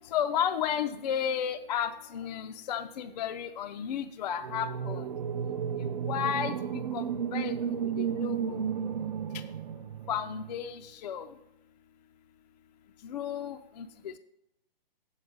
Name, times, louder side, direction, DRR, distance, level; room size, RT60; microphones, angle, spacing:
voice 1, 0.1-5.0 5.8-6.5 6.9-7.0 7.3-8.4 10.1-11.3 13.0-14.1, left 8 dB, 45° left, 8 dB, 0.4 m, -33 dB
sound 1, 4.4-10.5, right 7 dB, 45° right, 0.5 m, -33 dB
8.0 x 4.1 x 6.4 m, 0.86 s
figure-of-eight pair, 130°, 29 cm